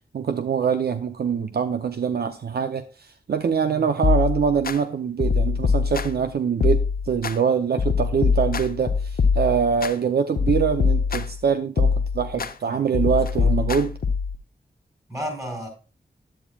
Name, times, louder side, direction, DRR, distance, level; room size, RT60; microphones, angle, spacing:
voice 1, 0.1-13.9, right 6 dB, 65° right, 0.6 m, -24 dB
sound 1, 4.0-4.8 5.2-6.3 6.6-7.3 7.8-9.9 10.4-11.4 11.8-12.5 12.9-14.4, left 5 dB, 60° left, 0.7 m, -23 dB
voice 2, 12.3-12.8 13.4-13.5 15.1-15.7, equal, 20° right, 4.5 m, -34 dB
10.5 x 8.5 x 2.3 m
wide cardioid pair, 105°, 18 cm